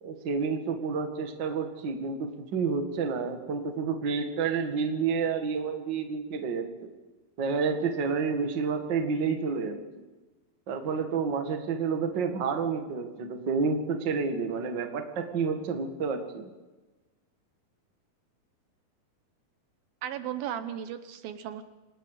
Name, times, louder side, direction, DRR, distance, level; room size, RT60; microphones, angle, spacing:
voice 1, 0.0-6.9 7.4-9.8 10.7-16.5, right 5 dB, 40° right, 5 dB, 1.9 m, -29 dB
voice 2, 20.0-21.6, right 10 dB, 75° right, 10 dB, 2.7 m, -35 dB
27.5 x 20.0 x 5.0 m, 1.2 s
omnidirectional pair, 4.4 m